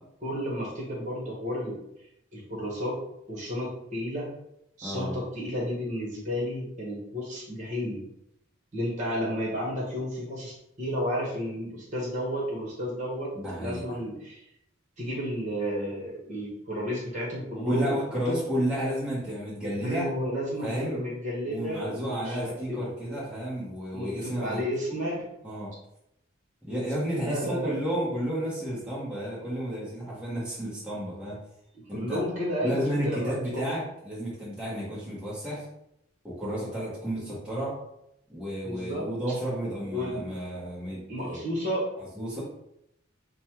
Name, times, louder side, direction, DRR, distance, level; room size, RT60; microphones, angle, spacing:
voice 1, 0.2-1.8 2.3-3.0 3.3-4.3 4.8-8.0 8.7-13.3 13.6-14.4 15.0-18.0 18.2-18.4 19.8-22.8 23.9-25.2 27.2-27.7 31.9-33.6 38.6-39.1 39.9-40.2 41.1-41.9, equal, 40° right, -5 dB, 1.3 m, -32 dB
voice 2, 4.8-5.1 13.3-13.8 17.5-20.1 20.6-21.0 21.4-24.6 24.9-25.0 25.4-25.7 26.6-31.4 31.9-32.2 32.6-35.6 36.2-37.8 38.3-41.4 42.0-42.4, equal, 5° right, -8 dB, 1.1 m, -32 dB
5.2 x 2.2 x 3.0 m, 0.79 s
head